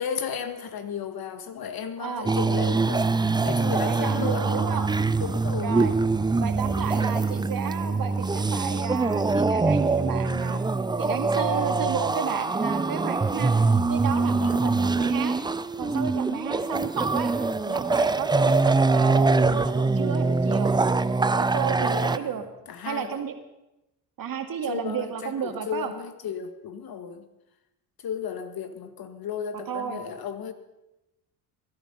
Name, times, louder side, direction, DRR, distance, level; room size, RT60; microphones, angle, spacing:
voice 1, 0.0-4.9 5.2-5.8 14.4-14.7 16.1-16.7 21.8-22.4 22.7-23.2 24.7-27.3 28.0-30.5, left 7 dB, 50° left, 8 dB, 1.9 m, -34 dB
sound 1, 2.3-22.2, right 3 dB, 10° right, 0.5 m, -24 dB
voice 2, 3.9-4.9 5.6-5.9 6.4-10.6 11.0-13.5 13.9-15.4 15.8-17.3 17.7-20.7 21.4-22.4 22.9-23.3 24.2-25.9 29.7-30.0, right 7 dB, 50° right, 6 dB, 2.2 m, -32 dB
21.0 x 11.0 x 5.5 m, 0.94 s
supercardioid pair, 75°, 45 cm